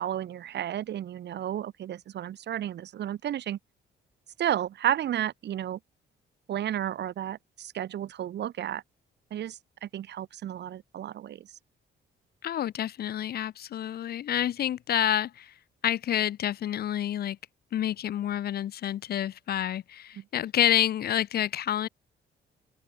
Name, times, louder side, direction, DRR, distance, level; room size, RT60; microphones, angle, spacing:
voice 1, 0.0-3.6 4.4-5.8 6.5-8.8 9.3-11.5 20.2-20.3, right 11 dB, 60° right, 0.8 m, -32 dB
voice 2, 12.4-15.5 15.8-17.4 17.7-21.9, left 11 dB, 50° left, 0.5 m, -28 dB
cardioid pair, 90°, 20 cm